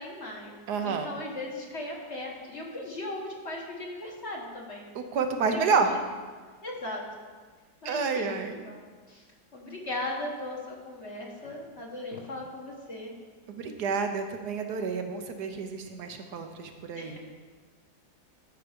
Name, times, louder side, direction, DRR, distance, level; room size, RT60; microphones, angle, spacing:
voice 1, 0.0-0.5 0.8-4.8 5.5-5.8 6.6-7.0 7.8-8.3 8.7-9.2 9.5-13.1 16.9-17.2, left 2 dB, 40° left, -2 dB, 1.7 m, -38 dB
voice 2, 0.7-1.1 4.9-5.9 7.8-8.6 13.5-17.2, right 5 dB, 70° right, 6 dB, 1.3 m, -29 dB
13.0 x 5.9 x 5.2 m, 1.5 s
omnidirectional pair, 1.9 m